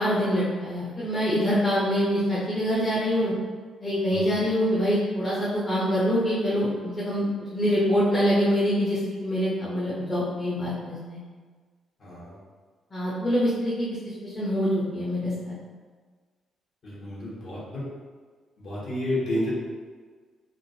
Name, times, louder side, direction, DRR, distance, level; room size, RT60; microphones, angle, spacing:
voice 1, 0.0-3.3 3.8-11.2 12.9-13.9 14.2-15.6, equal, 30° left, -9 dB, 0.8 m, -25 dB
voice 2, 12.0-12.4 16.8-17.8 18.6-19.5, left 1 dB, 55° left, -8 dB, 1.3 m, -31 dB
3.5 x 2.5 x 2.7 m, 1.5 s
cardioid pair, 90°, 0 cm